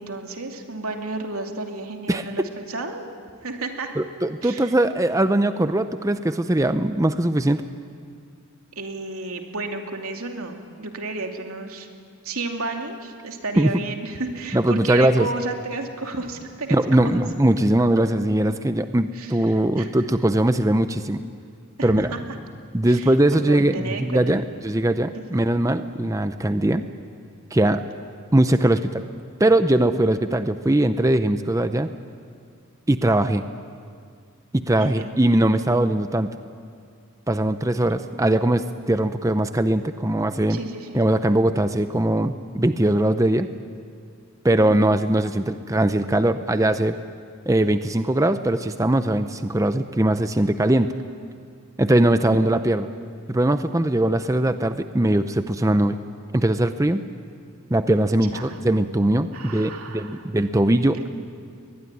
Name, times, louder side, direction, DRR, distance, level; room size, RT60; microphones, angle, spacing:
voice 1, 0.0-3.0 3.4-3.9 4.4-4.7 8.8-11.9 12.2-16.8 17.0-17.2 19.1-19.9 21.8-22.2 22.8-24.2 25.1-25.4 34.8-35.1 40.5-41.0 44.5-44.9 52.0-52.6 58.2-58.6 59.3-60.2 60.9-61.1, right 3 dB, 75° right, 3 dB, 2.8 m, -32 dB
voice 2, 4.0-7.6 13.6-13.8 14.5-15.3 16.7-21.2 21.8-22.1 22.7-26.9 27.5-27.8 28.3-29.0 29.4-31.9 32.9-33.4 34.5-36.3 37.3-40.6 40.9-43.5 44.4-47.0 47.5-50.9 51.8-52.9 53.3-56.0 56.3-57.0 57.7-61.1, right 1 dB, 15° right, 10 dB, 0.6 m, -20 dB
22.5 x 22.0 x 10.0 m, 2.2 s
head